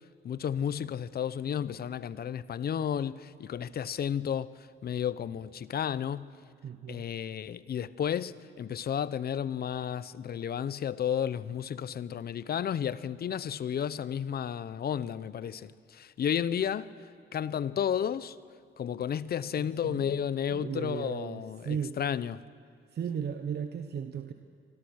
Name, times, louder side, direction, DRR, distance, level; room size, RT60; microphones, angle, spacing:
voice 1, 0.2-6.3 6.9-17.0 17.3-18.4 18.8-22.4, left 8 dB, 50° left, 0.8 m, -32 dB
voice 2, 6.6-7.0 19.6-20.2 20.5-21.9 22.9-24.3, right 7 dB, 55° right, 1.1 m, -36 dB
27.0 x 24.5 x 6.4 m
cardioid pair, 90°, 20 cm